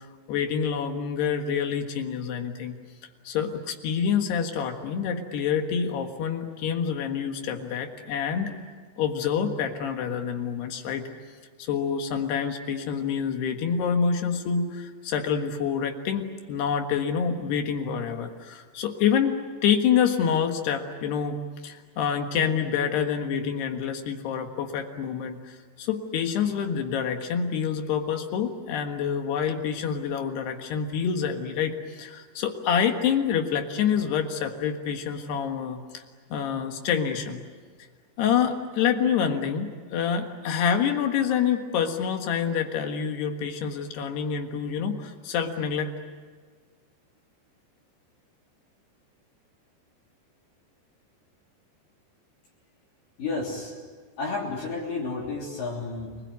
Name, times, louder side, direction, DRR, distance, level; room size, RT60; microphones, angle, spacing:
voice 1, 0.0-2.8 3.3-8.5 9.0-11.1 11.6-19.4 19.6-21.4 21.6-36.0 36.3-37.4 38.2-45.9, left 7 dB, 65° left, 5 dB, 3.4 m, -27 dB
voice 2, 53.2-53.8 54.2-56.2, left 3 dB, 50° left, -2 dB, 4.6 m, -31 dB
30.0 x 20.5 x 9.5 m, 1.5 s
omnidirectional pair, 5.3 m